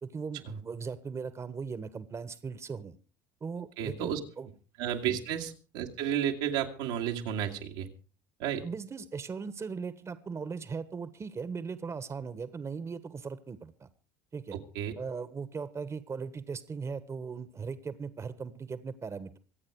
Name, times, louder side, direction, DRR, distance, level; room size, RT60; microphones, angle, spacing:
voice 1, 0.0-3.0 3.4-4.5 5.1-5.2 8.6-13.9 14.3-14.6 15.0-19.4, right 5 dB, 30° right, 14 dB, 1.4 m, -38 dB
voice 2, 3.8-4.2 4.8-7.9 8.4-8.6 14.5-14.9, right 9 dB, 75° right, 2 dB, 2.1 m, -32 dB
25.5 x 8.5 x 4.8 m, 0.35 s
hypercardioid pair, 75°, 10 cm